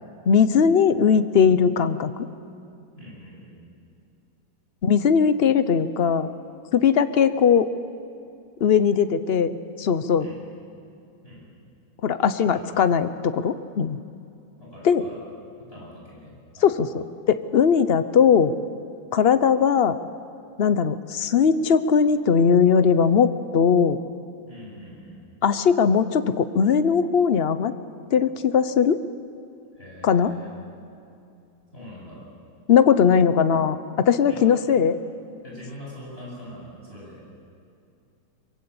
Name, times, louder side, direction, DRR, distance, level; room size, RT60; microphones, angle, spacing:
voice 1, 0.3-2.1 4.8-6.3 6.7-7.7 8.6-10.3 12.0-14.0 14.8-15.0 16.6-18.5 19.1-20.0 20.6-24.0 25.4-27.7 28.1-29.0 30.0-30.3 32.7-35.0, left 7 dB, 70° left, 12 dB, 0.5 m, -19 dB
voice 2, 3.0-3.5 10.2-10.4 11.2-11.4 12.5-12.7 14.6-15.2 15.7-16.7 24.4-25.2 29.7-30.5 31.7-32.2 34.3-34.5 35.4-37.2, left 1 dB, 30° left, -4 dB, 8.4 m, -43 dB
23.0 x 22.5 x 8.7 m, 2.6 s
omnidirectional pair, 2.1 m